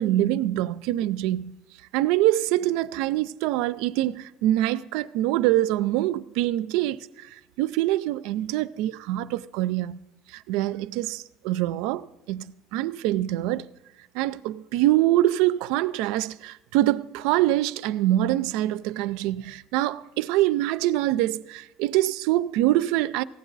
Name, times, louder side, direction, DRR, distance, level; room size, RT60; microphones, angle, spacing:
voice 1, 0.0-1.6 1.9-10.0 10.3-12.4 12.7-13.7 14.1-23.2, right 15 dB, 80° right, 0.3 m, -24 dB
16.0 x 9.1 x 4.0 m
cardioid pair, 140°, 0 cm